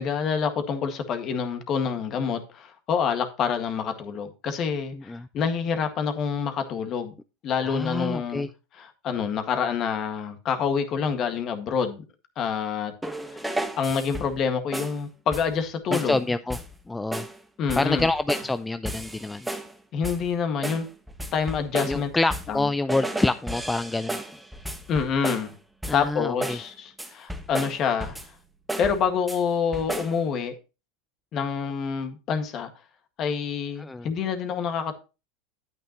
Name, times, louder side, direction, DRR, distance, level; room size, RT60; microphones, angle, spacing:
voice 1, 0.0-7.1 7.4-8.5 8.7-12.0 12.4-12.9 13.3-13.4 13.8-16.2 17.6-18.1 19.9-20.9 21.3-22.1 22.5-22.7 24.9-25.5 25.9-28.2 28.8-30.6 31.3-32.7 33.2-34.9, left 6 dB, 45° left, 1.7 m, -27 dB
voice 2, 4.9-5.3 7.6-8.5 15.9-16.6 16.9-17.3 17.8-19.5 21.9-24.2 25.9-26.6 33.8-34.1, left 2 dB, 10° left, 0.4 m, -27 dB
sound 1, 13.0-14.4 14.7-15.0 15.3-15.6 15.9-16.2 16.5-16.8 17.1-17.4 17.7-18.6 18.9-19.7 20.0-20.3 20.6-22.6 22.9-25.5 25.8-26.1 26.4-26.7 27.0-28.4 28.7-29.4 29.7-30.2, right 1 dB, 5° right, 1.1 m, -34 dB
9.4 x 8.8 x 3.0 m
hypercardioid pair, 100°, 0 cm